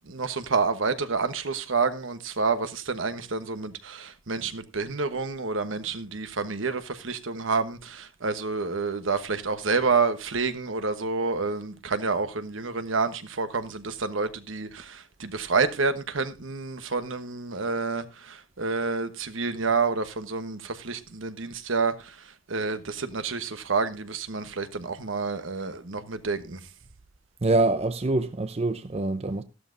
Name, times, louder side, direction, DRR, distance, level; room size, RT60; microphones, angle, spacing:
voice 1, 0.1-26.6, right 4 dB, 75° right, 1.2 m, -29 dB
voice 2, 27.4-29.4, right 2 dB, 30° right, 0.6 m, -25 dB
14.0 x 12.5 x 2.6 m
head